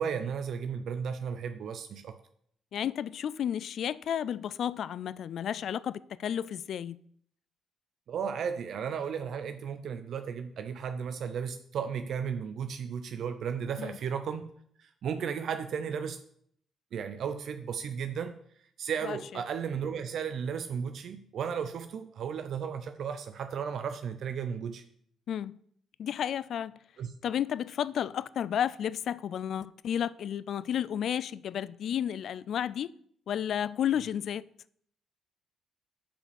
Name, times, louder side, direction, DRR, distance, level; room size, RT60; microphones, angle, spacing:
voice 1, 0.0-2.1 8.1-14.5 14.8-16.2 16.9-18.3 18.8-24.8 27.0-27.1, right 7 dB, 65° right, 0.6 m, -34 dB
voice 2, 2.7-7.0 13.8-14.0 19.0-19.2 25.3-25.6 26.0-26.8 27.2-32.9 33.3-34.4, left 9 dB, 65° left, 0.3 m, -32 dB
7.3 x 4.9 x 6.9 m
cardioid pair, 90°, 0 cm